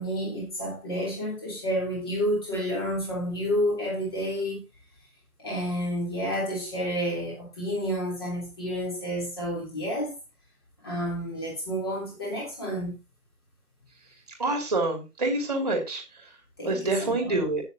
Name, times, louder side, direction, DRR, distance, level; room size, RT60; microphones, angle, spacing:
voice 1, 0.0-4.6 5.4-10.1 10.8-13.0 16.6-17.4, equal, 15° left, 3.2 m, -30 dB
voice 2, 14.4-16.0 16.6-17.6, right 2 dB, 25° right, 2.6 m, -26 dB
17.5 x 6.6 x 2.8 m
figure-of-eight pair, 170°, 46 cm